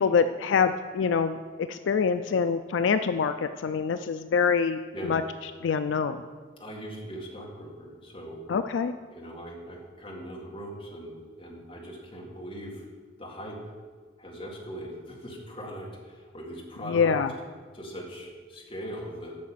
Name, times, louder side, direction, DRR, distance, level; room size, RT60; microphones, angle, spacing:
voice 1, 0.0-5.2 5.6-6.2 8.5-8.9 16.8-17.3, left 6 dB, 75° left, 9 dB, 0.3 m, -25 dB
voice 2, 6.6-8.4 9.1-12.9 13.2-13.7 14.2-17.2 17.7-19.4, equal, 25° left, -2 dB, 1.8 m, -40 dB
8.6 x 6.0 x 7.4 m, 1.5 s
head